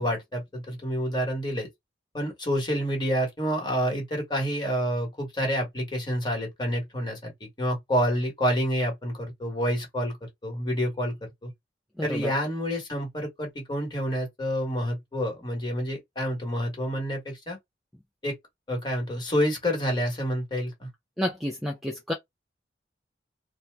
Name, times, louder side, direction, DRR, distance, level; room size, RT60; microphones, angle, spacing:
voice 1, 0.0-1.7 2.1-11.2 11.4-11.5 12.0-17.6 18.2-18.3 18.7-20.9, equal, 25° left, 1.1 m, -28 dB
voice 2, 12.0-12.3 21.2-22.1, left 1 dB, ahead, 0.3 m, -30 dB
2.7 x 2.1 x 3.3 m
head